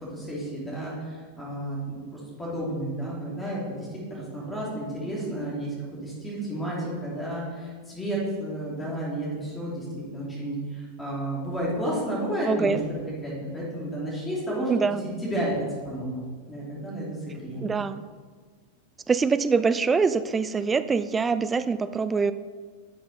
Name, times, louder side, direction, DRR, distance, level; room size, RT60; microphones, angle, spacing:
voice 1, 0.0-5.7 6.0-9.8 10.1-12.7 13.0-15.5 15.8-17.7, right 1 dB, 15° left, -6 dB, 2.9 m, -32 dB
voice 2, 12.4-12.8 14.7-15.0 17.6-18.0 19.1-22.3, right 5 dB, 15° right, 13 dB, 0.4 m, -24 dB
10.5 x 6.0 x 4.2 m, 1.5 s
figure-of-eight pair, 90°, 0 cm